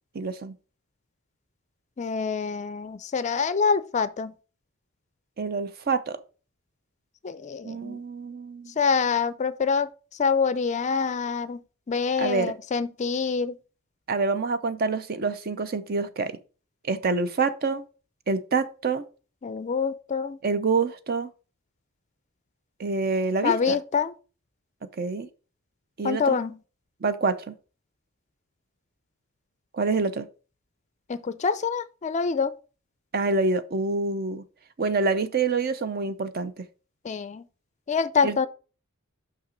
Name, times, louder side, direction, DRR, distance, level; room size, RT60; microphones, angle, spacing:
voice 1, 0.1-0.5 5.4-6.2 7.6-8.7 12.2-12.5 14.1-16.4 16.8-17.8 18.3-19.1 20.4-21.3 22.8-23.8 25.0-25.3 26.0-26.4 27.0-27.5 29.7-30.3 33.1-34.4 34.8-36.6 38.2-38.4, right 4 dB, 45° right, 0.6 m, -26 dB
voice 2, 2.0-4.3 7.2-8.0 8.8-9.9 10.2-11.6 11.9-13.6 19.4-20.4 23.4-24.1 26.0-26.6 31.1-32.5 37.0-37.4 37.9-38.5, left 5 dB, 35° left, 0.4 m, -26 dB
5.9 x 5.8 x 3.9 m
head